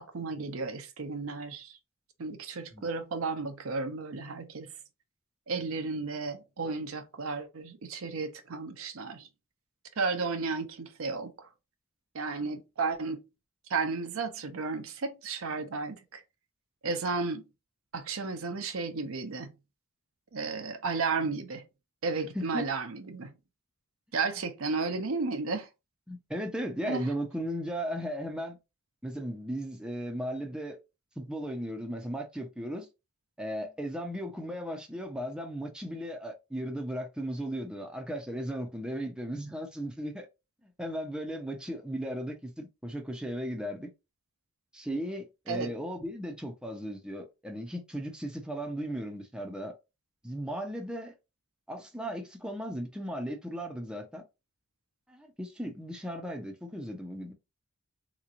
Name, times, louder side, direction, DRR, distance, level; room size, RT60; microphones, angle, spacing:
voice 1, 0.0-1.8 2.2-4.7 5.5-9.3 10.0-11.5 12.1-13.2 13.7-16.2 16.8-17.4 17.9-19.5 20.3-21.6 22.0-23.3 24.1-25.7 26.9-27.1 45.5-45.7, right 4 dB, 80° right, 0.7 m, -33 dB
voice 2, 22.3-22.7 26.1-28.6 29.0-30.8 31.2-32.9 33.4-40.3 40.8-43.9 44.7-49.7 50.2-51.1 51.7-54.2 55.1-57.3, equal, 5° right, 0.6 m, -36 dB
3.8 x 3.0 x 2.5 m
head